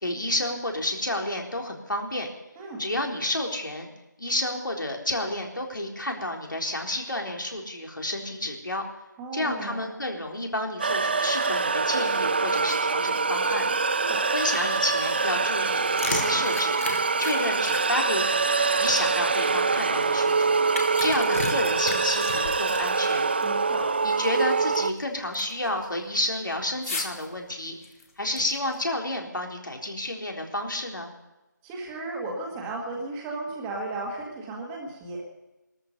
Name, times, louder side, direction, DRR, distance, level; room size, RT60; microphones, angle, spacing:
voice 1, 0.0-2.3 2.8-3.9 4.2-8.8 9.3-13.7 14.3-16.7 17.2-20.6 21.0-23.3 24.0-27.8 28.2-31.1, left 1 dB, 85° left, 1 dB, 4.0 m, -30 dB
voice 2, 9.2-9.9 13.8-14.3 23.4-23.9 31.6-35.2, right 2 dB, 10° right, -1 dB, 1.7 m, -35 dB
sound 1, 10.8-24.9, right 4 dB, 30° right, 0.5 m, -25 dB
sound 2, 15.6-19.5 20.0-23.5 23.7-23.8 24.4-25.0 25.3-25.7 26.8-27.3 27.8-28.7, left 3 dB, 45° left, 2.4 m, -35 dB
19.5 x 13.5 x 5.5 m, 1.0 s
figure-of-eight pair, 165°, 10 cm